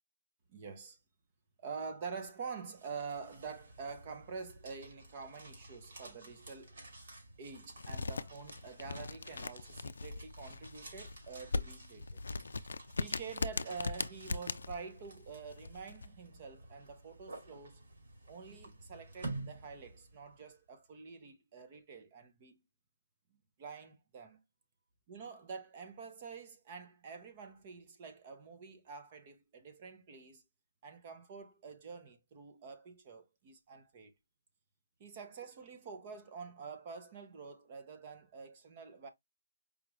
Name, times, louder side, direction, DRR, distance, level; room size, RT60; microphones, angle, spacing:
voice 1, 0.5-1.0 1.6-6.7 7.4-12.2 13.0-17.8 18.3-22.6 23.6-24.4 25.1-30.4 30.8-34.1 35.0-39.1, right 5 dB, 25° right, 0.7 m, -47 dB
sound 1, 2.5-20.5, right 2 dB, 65° right, 2.2 m, -51 dB
sound 2, 7.8-16.1, left 3 dB, 85° left, 0.4 m, -39 dB
4.9 x 2.4 x 3.1 m
hypercardioid pair, 170°, 0 cm